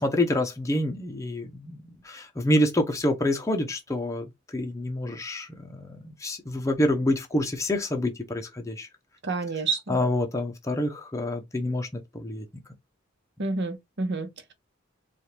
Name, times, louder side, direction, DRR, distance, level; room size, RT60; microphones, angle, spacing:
voice 1, 0.0-1.8 2.0-8.9 9.9-12.5, left 1 dB, 15° left, 0.7 m, -27 dB
voice 2, 9.2-10.0 13.4-14.5, right 3 dB, 60° right, 1.0 m, -29 dB
4.3 x 2.4 x 3.3 m
head